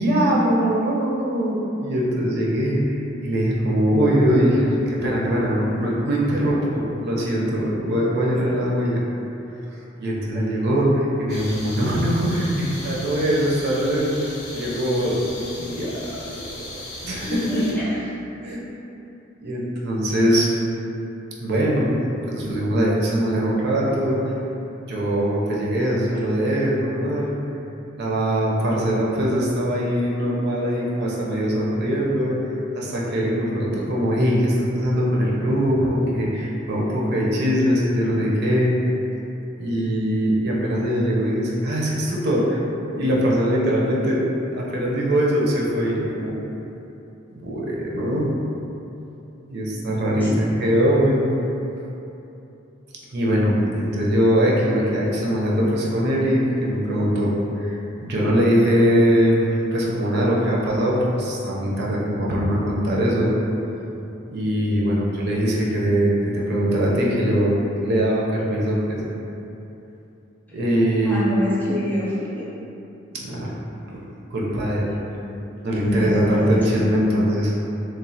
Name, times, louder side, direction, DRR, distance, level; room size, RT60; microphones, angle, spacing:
voice 1, 0.0-9.0 10.0-16.1 17.0-17.6 18.4-18.6 19.4-20.5 21.4-24.3 24.9-27.3 28.0-38.8 39.6-42.6 42.9-44.2 44.5-46.4 47.3-48.3 49.5-51.2 53.1-57.8 58.0-63.3 64.3-67.5 67.8-69.0 70.5-71.3 73.1-73.5 74.3-75.0 75.6-77.5, equal, 55° right, -4 dB, 0.5 m, -22 dB
sound 1, 11.3-17.7, left 1 dB, 55° left, 0.6 m, -37 dB
voice 2, 17.3-18.0 50.2-50.4 70.5-70.6 71.0-72.4 75.8-76.9, left 1 dB, 10° left, -9 dB, 0.6 m, -27 dB
3.0 x 2.1 x 2.6 m, 2.9 s
head